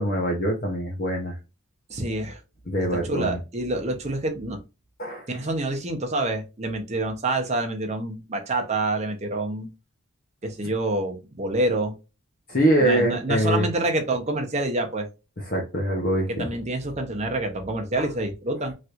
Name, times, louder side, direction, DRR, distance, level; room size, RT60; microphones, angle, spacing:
voice 1, 0.0-1.4 2.7-3.4 5.0-5.3 12.5-13.7 15.4-16.5 18.0-18.1, right 1 dB, 40° left, 0.7 m, -24 dB
voice 2, 1.9-2.4 3.0-4.6 5.3-9.7 10.4-11.9 12.8-15.1 16.4-18.7, right 2 dB, 30° right, 0.7 m, -27 dB
3.2 x 2.9 x 2.4 m
head